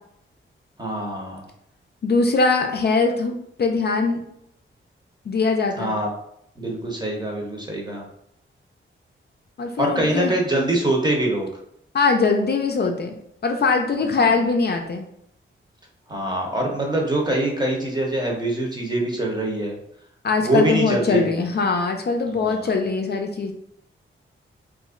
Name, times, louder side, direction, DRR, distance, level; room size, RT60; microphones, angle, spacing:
voice 1, 0.8-1.4 5.8-6.1 6.6-8.0 9.8-11.5 14.0-14.2 16.1-19.8 20.4-21.2 22.3-22.6, right 1 dB, 20° right, 0 dB, 0.7 m, -24 dB
voice 2, 2.0-3.3 3.6-4.2 5.3-5.9 9.6-10.7 11.9-13.2 13.4-15.0 20.2-23.5, left 4 dB, 50° left, 3 dB, 0.4 m, -21 dB
3.0 x 2.4 x 3.6 m, 0.74 s
wide cardioid pair, 135°, 21 cm